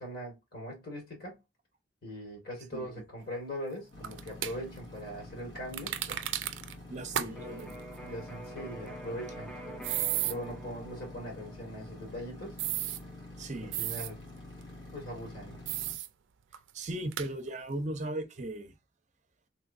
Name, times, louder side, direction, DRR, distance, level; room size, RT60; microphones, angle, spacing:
voice 1, 0.0-1.4 2.0-6.0 7.1-9.8 10.2-12.6 13.5-14.2 14.9-15.7, equal, 55° left, 1.6 m, -41 dB
sound 1, 3.9-15.9, left 2 dB, 80° left, 1.5 m, -48 dB
sound 2, 4.0-4.5 5.7-6.7 7.1-7.3 7.6-7.7 9.8-10.3 12.6-13.0 13.7-14.1 15.7-16.1 16.5-16.6 17.1-17.3, right 13 dB, 75° right, 0.4 m, -33 dB
voice 2, 6.9-7.8 13.4-13.8 16.7-18.7, right 1 dB, 40° right, 0.6 m, -37 dB
Electric guitar, 7.3-15.1, right 1 dB, 5° left, 0.4 m, -48 dB
3.3 x 3.1 x 2.5 m
head